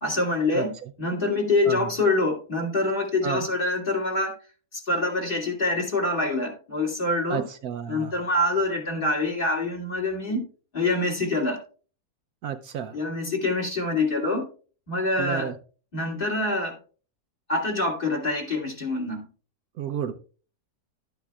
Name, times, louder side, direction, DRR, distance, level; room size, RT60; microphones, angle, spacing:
voice 1, 0.0-4.4 4.7-7.5 7.9-10.4 10.7-11.6 12.9-14.5 14.9-15.5 15.9-16.8 17.5-19.2, left 2 dB, 30° left, 2.6 m, -25 dB
voice 2, 0.5-0.9 1.7-1.9 3.2-3.5 7.3-8.1 12.4-13.0 15.2-15.5 19.8-20.1, right 8 dB, 70° right, 1.1 m, -31 dB
12.5 x 9.1 x 2.3 m
omnidirectional pair, 1.7 m